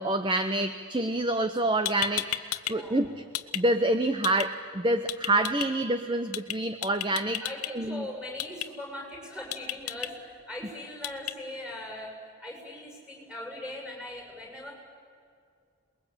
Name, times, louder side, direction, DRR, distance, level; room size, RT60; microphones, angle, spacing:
voice 1, 0.0-3.2 3.5-7.4 7.7-8.1, right 1 dB, 20° right, 10 dB, 0.8 m, -27 dB
sound 1, 1.5-1.6 1.9-2.7 3.0-3.6 4.2-4.5 5.1-5.7 6.3-6.6 6.8-7.7 8.4-8.7 9.5-10.1 11.0-11.3, left 13 dB, 90° left, 1.0 m, -32 dB
voice 2, 2.7-3.1 7.4-12.1 12.4-14.7, left 1 dB, 5° right, 0 dB, 7.5 m, -40 dB
28.0 x 21.5 x 8.9 m, 2.3 s
head